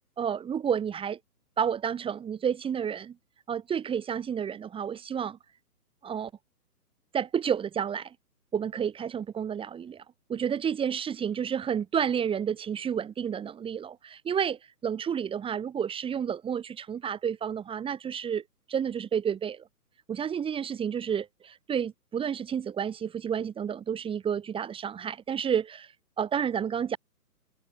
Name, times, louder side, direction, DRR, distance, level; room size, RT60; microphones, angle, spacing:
voice 1, 0.2-1.2 1.6-3.1 3.5-5.4 6.0-6.3 7.1-8.1 8.5-10.0 10.3-18.4 18.7-19.6 20.1-27.0, right 8 dB, 10° right, 7.8 m, -30 dB
hypercardioid pair, 150°, 47 cm